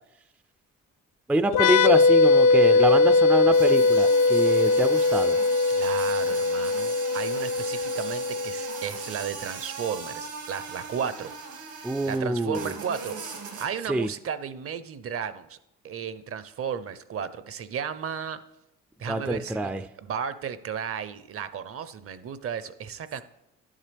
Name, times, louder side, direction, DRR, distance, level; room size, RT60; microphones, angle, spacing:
voice 1, 1.3-5.4 11.8-12.7 13.9-14.1 19.1-19.8, right 1 dB, 5° right, 10 dB, 0.3 m, -26 dB
sound 1, 1.5-9.0, left 3 dB, 60° left, 0.5 m, -20 dB
sound 2, 3.5-12.2 12.5-13.7, right 4 dB, 80° right, 2.0 m, -39 dB
voice 2, 5.7-11.3 11.7-15.6 15.8-18.4 19.0-19.7 20.0-23.2, right 7 dB, 50° right, 14 dB, 0.6 m, -34 dB
11.0 x 7.3 x 3.4 m, 0.85 s
cardioid pair, 90°, 30 cm